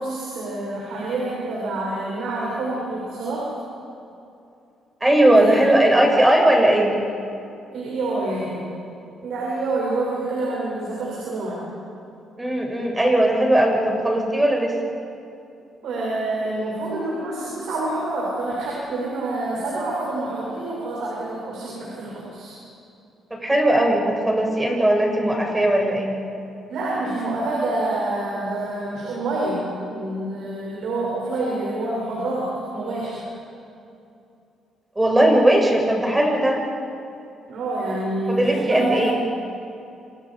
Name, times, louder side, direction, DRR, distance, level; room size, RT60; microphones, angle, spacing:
voice 1, 0.0-3.5 5.3-5.8 7.7-8.6 9.2-11.6 15.8-22.5 26.7-33.3 37.5-39.1, right 2 dB, 75° right, -5 dB, 7.6 m, -27 dB
voice 2, 5.0-7.0 12.4-14.7 23.4-26.2 35.0-36.6 38.3-39.1, right 1 dB, 15° right, 0 dB, 7.1 m, -18 dB
29.0 x 27.5 x 5.3 m, 2.6 s
cardioid pair, 90°, 0 cm